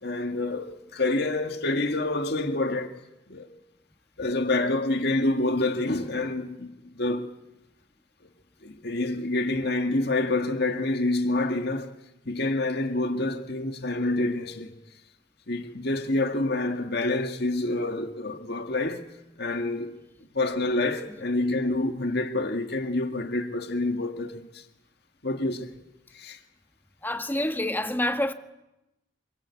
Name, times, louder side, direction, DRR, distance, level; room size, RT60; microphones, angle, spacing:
voice 1, 0.0-3.0 3.3-3.5 4.2-7.3 8.6-11.9 12.3-14.7 15.5-19.1 19.4-19.9 20.3-24.6 25.2-25.7 26.1-26.4, left 2 dB, 60° left, 1.9 m, -27 dB
voice 2, 27.0-28.3, left 1 dB, 10° left, 1.6 m, -27 dB
27.0 x 26.0 x 8.4 m
head